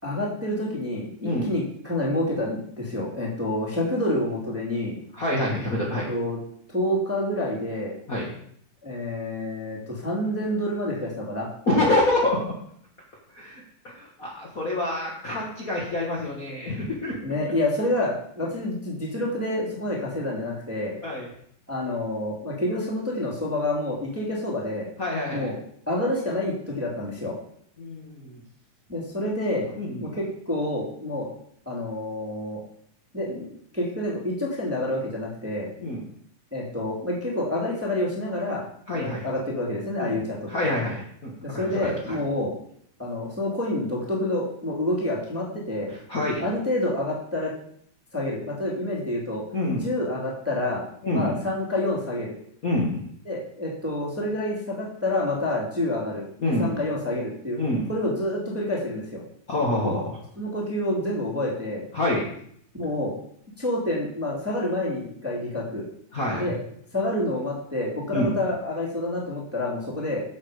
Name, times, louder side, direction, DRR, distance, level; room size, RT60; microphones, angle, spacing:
voice 1, 0.0-5.0 6.1-6.4 6.7-7.9 8.8-11.5 17.2-21.0 21.7-24.9 25.3-25.5 25.9-27.3 28.9-29.7 30.0-31.3 31.7-32.6 33.1-35.7 36.5-38.6 38.9-40.7 41.4-42.5 43.0-45.9 46.4-47.5 48.1-49.4 49.7-50.8 51.1-52.4 53.2-57.6 57.9-59.2 59.8-60.0 60.4-61.8 62.7-63.1 63.6-65.8 66.3-66.6 66.9-70.2, left 1 dB, 5° right, -4 dB, 2.1 m, -28 dB
voice 2, 5.1-6.1 8.1-8.3 11.7-12.5 13.3-13.6 13.9-17.2 21.0-21.3 25.0-25.5 27.8-28.4 29.7-30.1 35.8-36.0 38.9-39.3 40.0-40.2 40.5-41.9 45.9-46.4 49.5-49.9 51.0-51.4 52.6-53.0 56.4-56.7 57.6-57.8 59.5-60.2 61.9-62.2 66.1-66.6 68.1-68.3, left 1 dB, 35° left, -4 dB, 1.7 m, -26 dB
10.5 x 7.4 x 5.0 m, 0.66 s
omnidirectional pair, 3.7 m